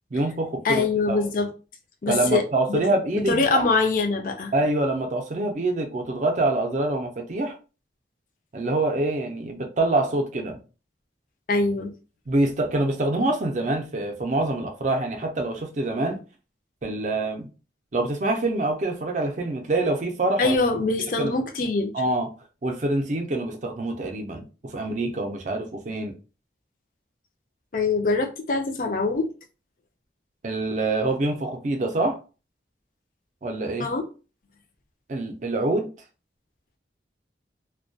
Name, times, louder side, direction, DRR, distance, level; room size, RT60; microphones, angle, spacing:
voice 1, 0.1-1.2 2.1-3.7 4.5-7.6 8.5-10.6 12.3-16.2 16.8-17.5 17.9-20.6 21.2-21.3 21.9-22.3 22.6-26.1 30.4-32.2 33.4-33.9 35.1-35.9, right 2 dB, 40° right, 0.4 m, -25 dB
voice 2, 0.6-1.5 2.0-2.4 2.7-2.8 3.3-4.5 11.5-11.9 20.4-21.9 27.7-29.3 33.8-34.0, left 3 dB, 45° left, 0.4 m, -23 dB
2.2 x 2.1 x 2.6 m
head